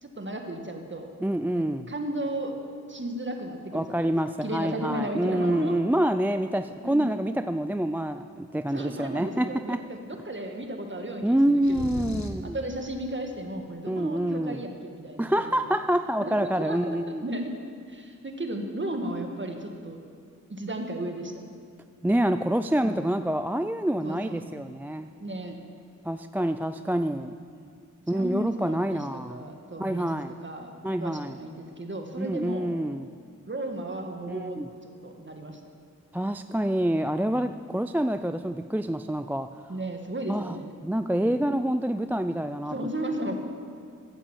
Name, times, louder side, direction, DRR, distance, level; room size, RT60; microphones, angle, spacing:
voice 1, 0.0-1.1 1.5-2.6 2.9-4.2 4.4-5.8 6.8-7.1 8.7-12.0 12.4-15.8 16.2-17.5 17.9-20.0 20.5-21.6 22.8-23.0 24.0-24.4 25.2-25.6 27.6-27.7 28.1-30.7 31.0-32.7 33.5-35.6 37.3-37.4 39.7-40.7 41.2-41.4 42.7-43.4, right 1 dB, 35° right, 4 dB, 1.7 m, -35 dB
voice 2, 1.2-1.9 3.7-9.8 11.2-12.6 13.9-14.6 15.2-17.2 22.0-25.1 26.0-27.3 28.1-29.5 29.8-30.3 30.8-31.4 32.2-33.1 34.3-34.7 36.1-39.7 40.3-40.6 40.8-42.7, right 1 dB, 5° right, 10 dB, 0.3 m, -27 dB
sound 1, 11.6-12.5, left 3 dB, 65° left, 1.3 m, -36 dB
15.5 x 9.2 x 7.3 m, 2.2 s
wide cardioid pair, 80°, 31 cm